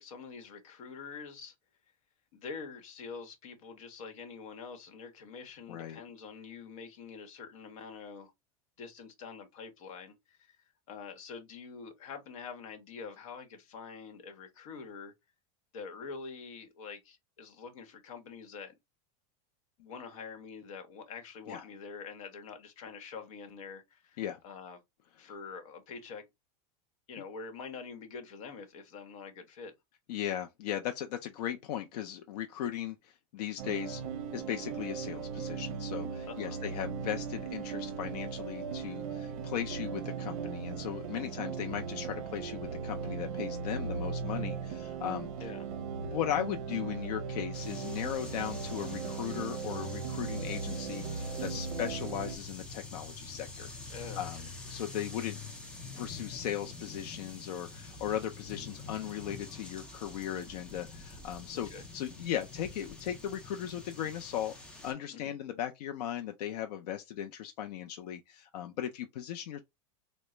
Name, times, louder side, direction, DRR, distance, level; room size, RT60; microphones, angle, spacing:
voice 1, 0.0-1.5 2.3-8.3 8.8-10.6 10.9-15.1 15.7-18.7 19.8-24.8 25.2-26.2 27.1-29.7 36.2-36.6 41.1-41.3 45.4-45.7 51.4-51.7 53.9-54.3 58.6-58.8 61.5-61.8 65.1-65.4, left 5 dB, 60° left, 1.1 m, -46 dB
voice 2, 5.7-6.0 21.5-21.6 24.2-24.4 30.1-34.0 34.3-45.5 46.0-55.4 55.9-64.5 64.8-69.6, left 10 dB, 85° left, 0.5 m, -37 dB
sound 1, 33.6-52.4, right 6 dB, 60° right, 0.6 m, -38 dB
sound 2, 47.5-64.9, left 3 dB, 5° left, 0.4 m, -46 dB
3.7 x 2.1 x 3.1 m
supercardioid pair, 180°, 20 cm